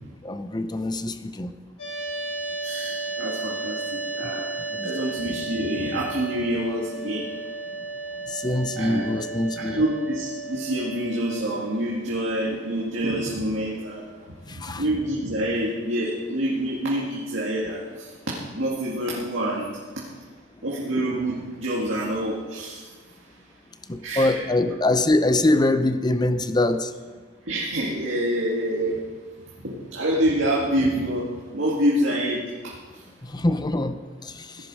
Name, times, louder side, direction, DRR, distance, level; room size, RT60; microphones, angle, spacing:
voice 1, 0.2-1.5 4.8-4.9 8.3-9.8 14.6-14.8 23.9-26.9 33.3-34.0, left 2 dB, 20° left, 10 dB, 0.6 m, -23 dB
sound 1, 1.8-11.9, right 3 dB, 85° left, 4.2 m, -34 dB
voice 2, 2.6-4.5 4.8-7.3 8.8-9.1 9.6-14.0 14.5-19.7 20.6-22.8 24.0-24.5 27.5-29.0 29.6-31.3 31.5-32.7, right 1 dB, 65° right, -5 dB, 2.1 m, -27 dB
16.5 x 10.5 x 4.8 m, 1.4 s
head